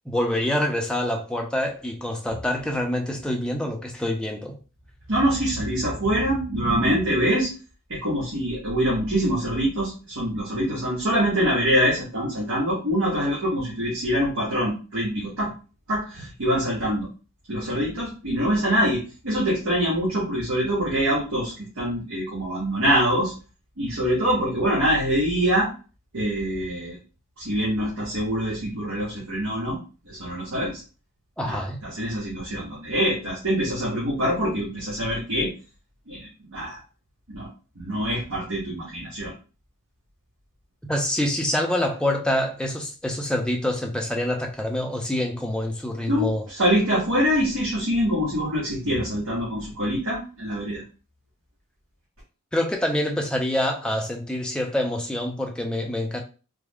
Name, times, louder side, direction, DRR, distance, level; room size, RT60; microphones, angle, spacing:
voice 1, 0.1-4.6 31.4-31.8 40.9-46.4 52.5-56.2, left 1 dB, 5° left, 0.4 m, -26 dB
voice 2, 5.1-7.5 7.9-15.5 15.9-17.1 17.5-23.3 23.8-25.7 26.1-26.9 27.4-29.8 30.0-30.8 31.4-35.5 36.1-36.8 37.3-37.5 37.8-39.3 46.1-50.8, equal, 70° right, 1.2 m, -24 dB
3.4 x 2.0 x 3.5 m
head